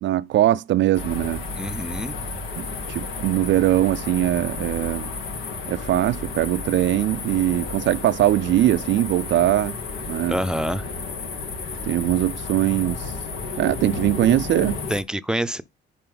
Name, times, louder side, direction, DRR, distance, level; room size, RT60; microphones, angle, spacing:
voice 1, 0.0-1.4 2.6-5.1 5.7-9.8 10.1-10.4 11.8-13.1 13.6-14.8, right 13 dB, 70° right, 0.4 m, -21 dB
sound 1, 0.9-15.0, left 4 dB, 90° left, 2.1 m, -32 dB
voice 2, 1.6-2.2 10.3-10.9 14.9-15.6, equal, 5° right, 0.6 m, -26 dB
10.0 x 4.4 x 3.9 m
cardioid pair, 90°, 20 cm